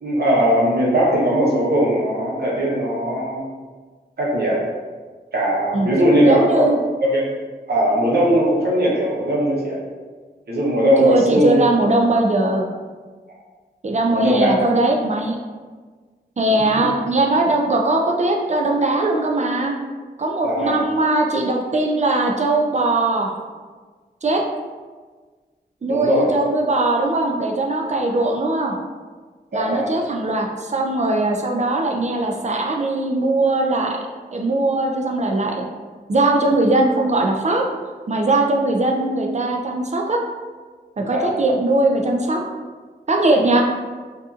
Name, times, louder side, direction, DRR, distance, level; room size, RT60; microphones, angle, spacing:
voice 1, 0.0-3.4 4.2-4.6 5.3-6.7 7.0-7.3 7.7-9.8 10.5-11.6 14.1-14.5 20.4-20.8 25.9-26.3 29.5-29.9 41.0-41.3, equal, 70° right, -5 dB, 0.8 m, -19 dB
voice 2, 6.2-6.8 11.0-12.7 13.8-15.4 16.4-19.7 20.2-23.3 24.2-24.4 25.8-28.8 29.5-34.1 34.3-35.6 36.1-37.7 38.1-40.2 41.0-42.4 43.1-43.6, right 2 dB, 40° right, 1 dB, 0.4 m, -20 dB
2.6 x 2.4 x 2.4 m, 1.4 s
cardioid pair, 50°, 18 cm